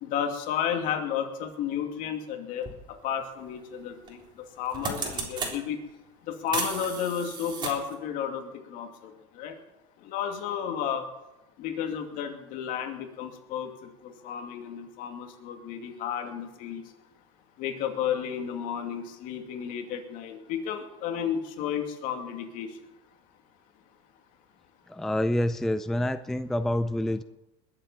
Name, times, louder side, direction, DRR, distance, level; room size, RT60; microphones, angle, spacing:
voice 1, 0.0-5.8 6.3-9.6 10.0-11.1 11.6-16.8 17.6-22.8, left 8 dB, 60° left, 4 dB, 2.6 m, -32 dB
sound 1, 2.6-2.8 4.1-4.3 4.6-5.6 6.5-7.9, right 4 dB, 30° right, 3.7 m, -34 dB
voice 2, 24.9-27.2, left 1 dB, 5° left, 12 dB, 0.4 m, -27 dB
21.0 x 8.0 x 7.3 m, 0.96 s
supercardioid pair, 125°, 16 cm